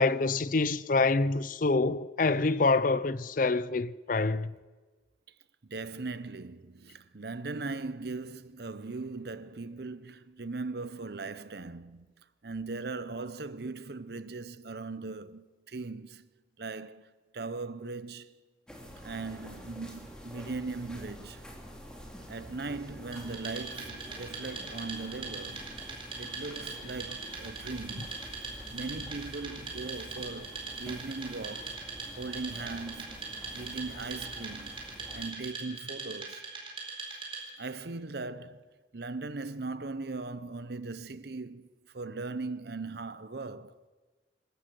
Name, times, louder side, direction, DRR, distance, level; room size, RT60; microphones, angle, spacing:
voice 1, 0.0-4.5, left 3 dB, 45° left, 0.5 m, -26 dB
voice 2, 5.7-12.1 12.4-16.3 16.6-18.4 19.0-21.5 22.3-25.7 26.2-28.2 28.7-31.8 32.2-33.2 33.5-34.8 35.1-36.5 37.6-43.8, right 3 dB, 55° right, 0.8 m, -39 dB
sound 1, 18.7-35.3, equal, 5° left, 2.9 m, -47 dB
Wood, 23.1-37.7, right 4 dB, 30° right, 4.3 m, -41 dB
26.5 x 12.5 x 7.8 m
head